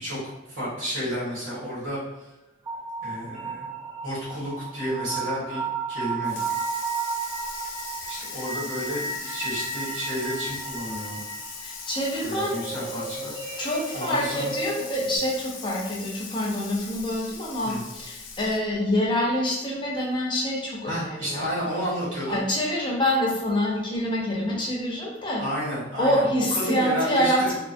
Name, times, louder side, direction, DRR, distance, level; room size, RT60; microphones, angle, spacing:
voice 1, 0.0-2.0 3.0-3.7 4.0-6.4 8.1-11.2 12.2-13.6 13.9-14.5 17.6-17.8 20.8-22.4 25.4-26.2 26.6-27.6, equal, 85° right, -9 dB, 1.5 m, -31 dB
sound 1, 2.7-15.2, right 4 dB, 25° right, 1.0 m, -33 dB
Water tap faucet / Sink (filling or washing), 6.2-18.7, left 5 dB, 75° left, 0.5 m, -40 dB
voice 2, 11.6-12.6 13.6-21.5 22.3-25.4 26.0-27.6, left 1 dB, 25° left, -3 dB, 0.5 m, -26 dB
2.8 x 2.1 x 2.6 m, 0.97 s
head